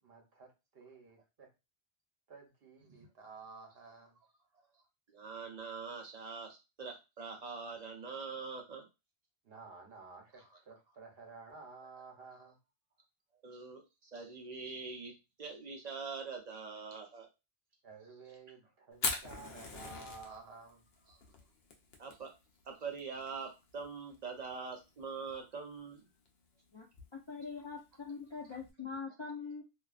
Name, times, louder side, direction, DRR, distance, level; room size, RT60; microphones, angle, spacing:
voice 1, 0.0-1.5 2.3-4.1 9.4-12.6 17.8-20.8, right 4 dB, 70° right, 1 dB, 1.0 m, -53 dB
voice 2, 5.1-8.9 10.3-10.6 13.4-17.3 21.1-21.2 22.0-22.3 22.7-26.0, right 5 dB, 50° right, 2 dB, 0.6 m, -44 dB
Fire, 18.9-28.7, left 4 dB, 75° left, 0.8 m, -44 dB
voice 3, 27.1-29.6, left 5 dB, 45° left, -4 dB, 0.4 m, -43 dB
2.4 x 2.3 x 2.3 m, 0.26 s
omnidirectional pair, 1.1 m